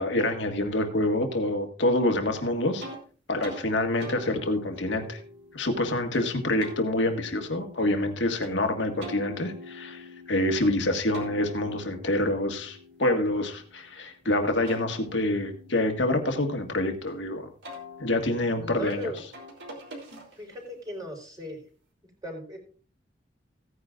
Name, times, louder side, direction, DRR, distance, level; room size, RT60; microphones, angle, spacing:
voice 1, 0.0-2.9 3.3-5.2 5.5-17.5 18.0-19.1, left 1 dB, 85° left, 5 dB, 1.7 m, -27 dB
sound 1, 2.8-3.0 3.4-3.6 4.0-6.3 6.6-8.5 9.0-10.7 11.1-14.0 14.4-17.1 17.6-20.6, left 1 dB, 85° right, 3.1 m, -44 dB
voice 2, 18.5-19.2 20.4-21.6 22.2-22.6, left 1 dB, 20° right, 0 dB, 3.8 m, -37 dB
16.0 x 9.7 x 2.5 m, 0.40 s
head